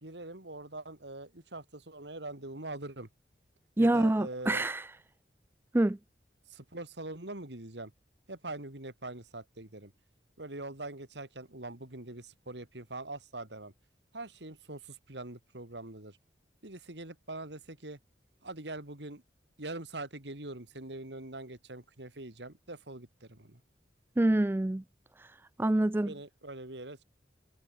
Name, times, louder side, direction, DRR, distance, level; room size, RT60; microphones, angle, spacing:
voice 1, 0.0-3.1 3.8-4.7 6.5-7.9 8.3-9.9 10.4-13.7 14.1-16.2 16.6-18.0 18.4-19.2 19.6-23.6 26.0-27.0, right 2 dB, 80° right, 3.4 m, -43 dB
voice 2, 3.8-4.8 5.7-6.0 24.2-24.8 25.6-26.1, right 1 dB, 15° right, 0.3 m, -26 dB
head